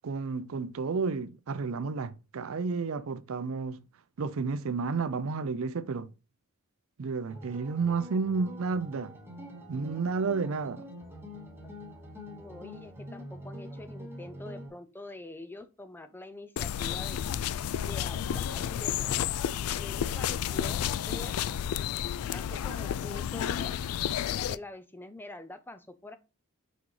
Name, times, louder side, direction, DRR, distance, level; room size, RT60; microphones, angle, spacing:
voice 1, 0.0-3.8 4.2-6.1 7.0-9.2 9.7-10.8, right 4 dB, 65° right, 0.4 m, -31 dB
sound 1, 7.3-14.7, equal, 10° right, 1.4 m, -45 dB
voice 2, 12.3-17.3 17.8-19.3 19.8-21.4 22.3-23.8 24.5-26.2, left 2 dB, 10° left, 0.4 m, -45 dB
sound 2, 16.6-24.6, left 9 dB, 75° left, 0.3 m, -31 dB
5.9 x 5.1 x 3.1 m
head